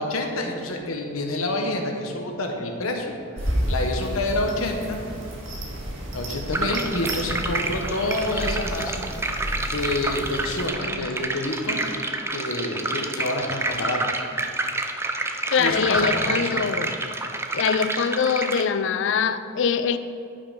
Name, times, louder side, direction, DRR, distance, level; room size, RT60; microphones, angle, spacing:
voice 1, 0.0-3.1 3.4-5.0 6.1-9.1 9.7-12.0 12.3-14.2 15.6-16.7, left 1 dB, 90° left, 2 dB, 1.2 m, -28 dB
sound 1, 3.4-10.7, equal, 65° right, 1.8 m, -31 dB
sound 2, 6.5-18.6, right 2 dB, 10° right, 0.4 m, -29 dB
voice 2, 15.5-16.9 17.5-20.0, left 6 dB, 60° left, 12 dB, 0.4 m, -23 dB
10.5 x 5.6 x 5.2 m, 2.4 s
head